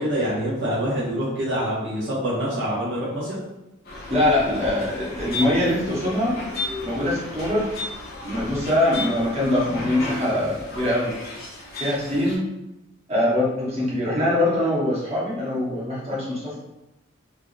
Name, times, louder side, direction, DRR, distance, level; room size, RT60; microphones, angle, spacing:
voice 1, 0.0-3.4, equal, 55° right, -7 dB, 0.7 m, -25 dB
sound 1, 3.8-12.4, left 2 dB, 45° left, 0.7 m, -34 dB
voice 2, 4.1-6.3 6.8-7.8 8.2-11.1 11.8-12.5 13.1-16.6, left 1 dB, 30° right, -7 dB, 0.9 m, -23 dB
3.3 x 2.4 x 2.5 m, 0.94 s
head